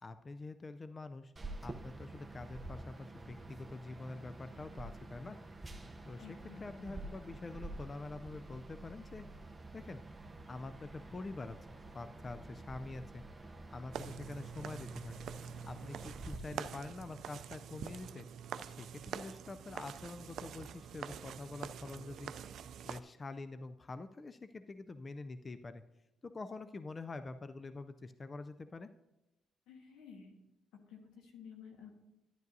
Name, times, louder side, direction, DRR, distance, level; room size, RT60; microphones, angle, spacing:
voice 1, 0.0-1.3 1.6-5.4 6.0-9.3 9.7-10.0 10.5-13.2 13.7-15.2 15.7-18.3 18.7-22.3 22.8-25.8 26.2-28.9, left 3 dB, 30° left, 11 dB, 0.4 m, -46 dB
sound 1, 1.4-16.4, right 2 dB, 20° right, 0.7 m, -49 dB
voice 2, 6.2-7.0 29.7-30.3 30.9-31.9, left 6 dB, 90° left, 3 dB, 1.4 m, -53 dB
sound 2, 13.9-23.0, right 8 dB, 70° right, 0.4 m, -46 dB
11.0 x 10.5 x 2.7 m, 0.95 s
cardioid pair, 90°, 0 cm